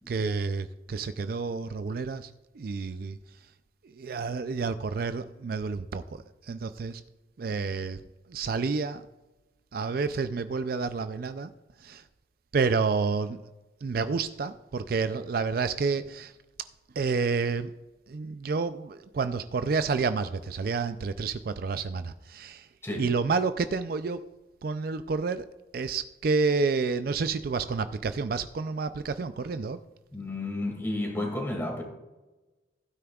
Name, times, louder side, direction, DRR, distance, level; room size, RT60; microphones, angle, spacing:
voice 1, 0.1-3.2 3.8-7.0 7.4-8.0 8.3-9.1 9.7-11.5 11.8-12.0 12.5-13.4 13.8-16.3 17.0-17.7 18.1-22.7 23.0-24.3 24.6-25.5 25.7-29.8, right 4 dB, 50° right, 11 dB, 0.4 m, -29 dB
voice 2, 30.1-31.8, left 1 dB, 15° left, 1 dB, 2.1 m, -32 dB
15.5 x 9.4 x 2.3 m, 1.1 s
head